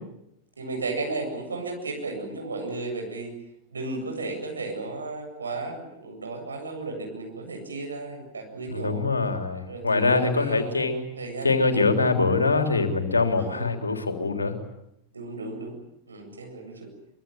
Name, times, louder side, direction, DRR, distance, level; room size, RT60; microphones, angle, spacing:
voice 1, 0.6-3.3 3.7-9.0 9.7-10.8 11.2-11.9 13.3-13.7 15.1-15.7 16.1-16.9, right 3 dB, 75° right, 3 dB, 8.0 m, -34 dB
voice 2, 8.7-11.1 11.4-14.6, left 3 dB, 80° left, 6 dB, 3.7 m, -23 dB
25.0 x 24.0 x 9.2 m, 0.79 s
figure-of-eight pair, 90°, 0 cm